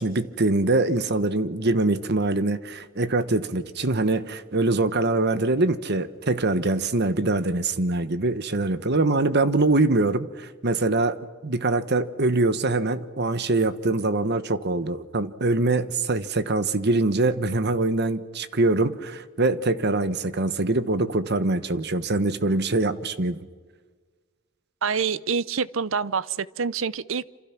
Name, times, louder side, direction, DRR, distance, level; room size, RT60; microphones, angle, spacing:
voice 1, 0.0-11.2 11.4-23.4, right 2 dB, 55° right, 13 dB, 1.3 m, -23 dB
voice 2, 24.8-27.3, right 6 dB, 70° right, 19 dB, 0.7 m, -26 dB
28.0 x 27.0 x 6.0 m, 1.4 s
head